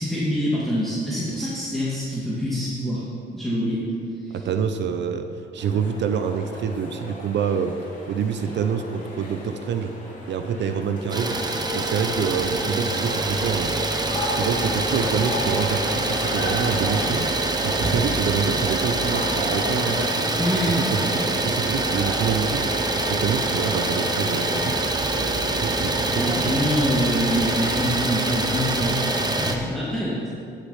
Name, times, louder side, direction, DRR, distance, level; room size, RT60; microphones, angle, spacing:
voice 1, 0.0-3.0 3.3-3.8 4.2-4.4 20.4-20.8 26.1-29.0 29.4-30.2, equal, ahead, -9 dB, 2.2 m, -25 dB
voice 2, 4.3-7.8 8.1-9.9 10.3-11.4 11.7-13.7 14.2-17.3 17.6-20.3 20.6-26.5 26.8-27.0, right 7 dB, 65° right, 8 dB, 0.6 m, -27 dB
sound 1, 5.6-25.1, left 1 dB, 40° left, 2.7 m, -36 dB
Idling, 11.1-29.6, right 2 dB, 20° right, 1.0 m, -25 dB
11.5 x 6.7 x 5.7 m, 2.6 s
cardioid pair, 90°, 20 cm